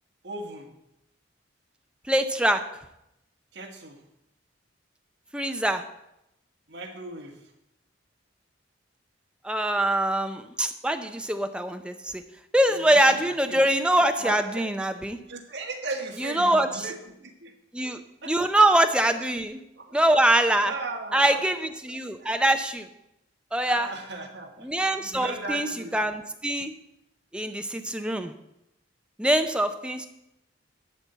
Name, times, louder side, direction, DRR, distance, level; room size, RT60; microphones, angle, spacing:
voice 1, 0.2-0.7 3.5-4.0 6.7-7.3 12.7-13.6 14.2-14.7 15.3-17.5 18.2-18.5 19.8-20.0 20.6-21.4 22.2-22.3 23.7-26.1, right 3 dB, 60° right, 2 dB, 1.7 m, -37 dB
voice 2, 2.1-2.6 5.3-5.8 9.4-12.2 12.5-15.2 16.2-16.9 17.7-18.0 18.3-19.6 19.9-20.7 21.1-22.9 23.5-23.9 24.6-26.7 27.3-28.3 29.2-30.1, right 1 dB, 5° right, 7 dB, 0.6 m, -23 dB
11.5 x 4.3 x 8.0 m, 0.85 s
head